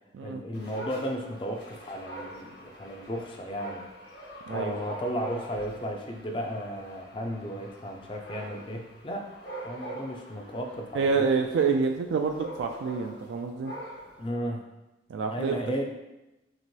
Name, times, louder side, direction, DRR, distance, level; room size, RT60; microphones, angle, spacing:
voice 1, 0.2-3.8 4.5-9.3 9.6-11.3 14.2-14.6 15.3-15.8, equal, 25° left, 2 dB, 0.4 m, -34 dB
Dog, 0.5-14.3, right 1 dB, 60° left, 1.2 m, -44 dB
voice 2, 4.5-4.8 10.9-13.7 15.1-15.6, right 5 dB, 80° right, 3 dB, 0.3 m, -27 dB
2.9 x 2.9 x 4.5 m, 0.97 s
head